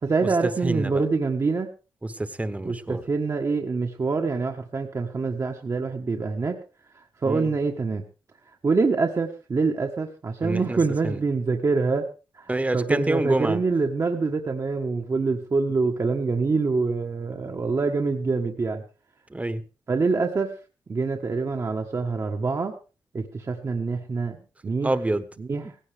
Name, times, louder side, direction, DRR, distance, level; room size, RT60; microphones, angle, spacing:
voice 1, 0.0-1.7 2.6-6.6 6.9-8.0 8.6-12.1 12.3-18.8 19.9-20.5 20.9-22.7 23.1-24.4 24.6-24.9 25.4-25.6, right 4 dB, 40° right, 2 dB, 1.3 m, -25 dB
voice 2, 0.6-1.0 2.0-3.0 7.3-7.5 10.4-10.8 11.0-11.2 12.5-13.6 19.3-19.6 24.8-25.3, right 2 dB, 15° right, 13 dB, 1.2 m, -27 dB
18.0 x 16.0 x 3.5 m, 0.33 s
wide cardioid pair, 100°, 8 cm